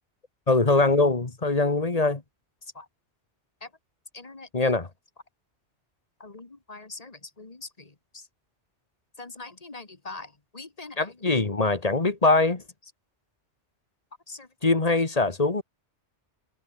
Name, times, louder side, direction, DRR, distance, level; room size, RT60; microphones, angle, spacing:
voice 1, 0.5-2.2 2.8-2.9 4.1-4.9 6.2-7.6 9.2-10.3 10.5-12.6 14.3-15.6, left 3 dB, 35° left, 1.8 m, -25 dB
omnidirectional pair, 1.2 m